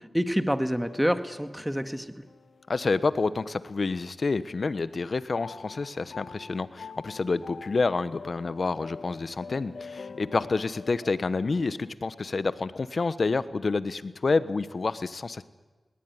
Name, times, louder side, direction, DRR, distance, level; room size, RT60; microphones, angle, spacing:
voice 1, 0.0-2.2, equal, 5° right, 9 dB, 1.9 m, -27 dB
sound 1, 0.8-4.3 4.6-11.9, left 5 dB, 80° left, 1.4 m, -46 dB
voice 2, 2.7-15.4, left 3 dB, 65° left, 15 dB, 1.1 m, -28 dB
20.0 x 19.0 x 9.6 m, 1.3 s
cardioid pair, 40°, 0 cm